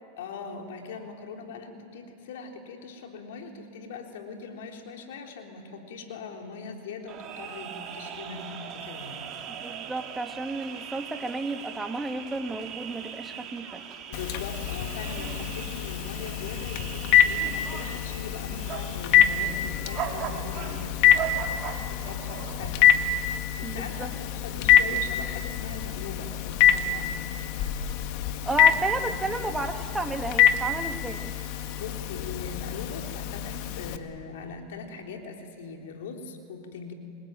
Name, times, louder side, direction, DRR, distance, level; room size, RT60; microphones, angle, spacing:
voice 1, 0.2-9.3 14.1-21.5 21.8-27.3 31.7-36.9, left 5 dB, 75° left, 2 dB, 3.8 m, -41 dB
sound 1, 7.1-22.8, right 8 dB, 35° right, 3.6 m, -39 dB
voice 2, 9.5-13.8 23.6-24.1 28.5-31.3, right 3 dB, 10° right, 5 dB, 2.0 m, -32 dB
Telephone, 14.1-34.0, left 9 dB, 55° left, 1.6 m, -25 dB
28.5 x 21.0 x 9.2 m, 2.5 s
hypercardioid pair, 120°, 0 cm